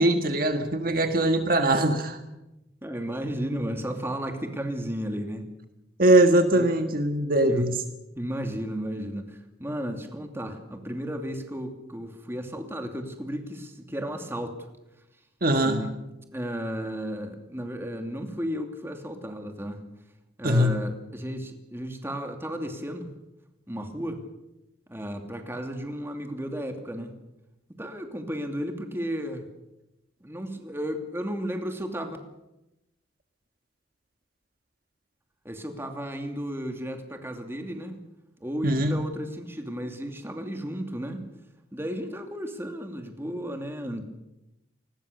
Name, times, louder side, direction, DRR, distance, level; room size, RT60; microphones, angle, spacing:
voice 1, 0.0-2.2 6.0-7.8 15.4-15.8 20.4-20.8 38.6-39.0, right 1 dB, 50° right, 6 dB, 1.7 m, -21 dB
voice 2, 2.8-5.5 6.5-6.7 7.4-7.7 8.2-14.5 15.6-15.9 16.3-19.8 20.4-23.1 23.7-24.2 24.9-27.1 27.8-29.5 30.2-32.2 35.4-38.0 38.4-41.2 41.7-44.0, equal, 10° right, 4 dB, 2.7 m, -34 dB
28.0 x 20.5 x 6.8 m, 0.95 s
head